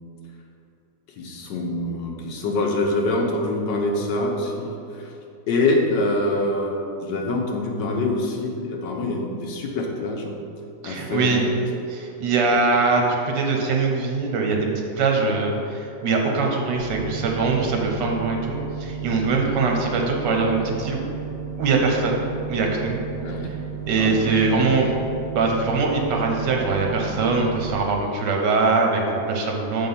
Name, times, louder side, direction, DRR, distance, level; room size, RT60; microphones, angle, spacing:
voice 1, 1.2-5.2 5.5-10.3 10.8-11.3 23.2-23.5 24.0-24.2, left 2 dB, 80° left, 0 dB, 1.6 m, -25 dB
voice 2, 10.8-11.4 11.9-14.7 15.0-21.0 21.6-23.0 23.4-23.5 23.9-24.9 25.3-29.9, right 3 dB, 80° right, 1 dB, 1.6 m, -22 dB
sound 1, 16.8-27.7, right 6 dB, 40° right, 0.7 m, -33 dB
7.2 x 3.8 x 5.5 m, 2.5 s
omnidirectional pair, 1.9 m